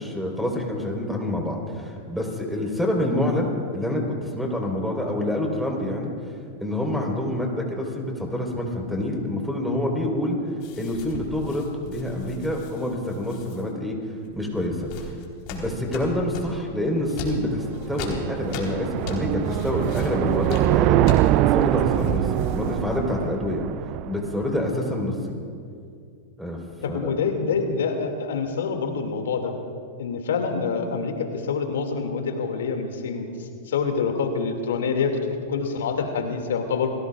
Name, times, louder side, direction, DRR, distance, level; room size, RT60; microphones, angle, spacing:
voice 1, 0.0-6.1 6.6-10.4 10.8-15.1 15.5-21.0 21.5-23.7 24.0-25.4 26.4-26.6 26.9-27.1, left 1 dB, ahead, 0 dB, 4.1 m, -27 dB
sound 1, 10.6-13.6 14.3-16.6 17.1-23.3, left 3 dB, 50° left, 3.8 m, -38 dB
sound 2, 17.3-24.6, right 14 dB, 45° right, 0.4 m, -23 dB
voice 2, 26.8-29.5 30.0-35.2 35.5-36.9, left 5 dB, 70° left, 4 dB, 2.3 m, -26 dB
29.0 x 19.0 x 2.4 m, 2.4 s
hypercardioid pair, 100°, 0 cm